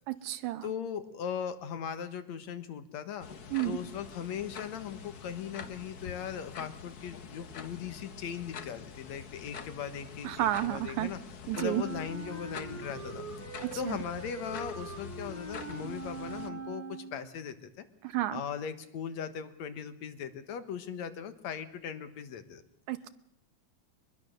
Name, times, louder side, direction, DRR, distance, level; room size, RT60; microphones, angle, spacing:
voice 1, 0.1-0.7 3.5-3.8 10.2-11.1 11.5-11.8 13.6-14.0 18.0-18.4 22.9-23.1, right 14 dB, 80° right, 13 dB, 2.4 m, -31 dB
voice 2, 0.6-3.3 3.6-11.2 11.6-13.2 13.8-17.9 18.3-22.6, left 8 dB, 70° left, 10 dB, 2.6 m, -39 dB
sound 1, 3.2-16.5, left 6 dB, 50° left, 1.1 m, -46 dB
Wind instrument woodwind instrument, 11.5-17.3, right 4 dB, 5° left, 4.9 m, -42 dB
24.0 x 21.0 x 6.6 m, 0.75 s
omnidirectional pair, 3.3 m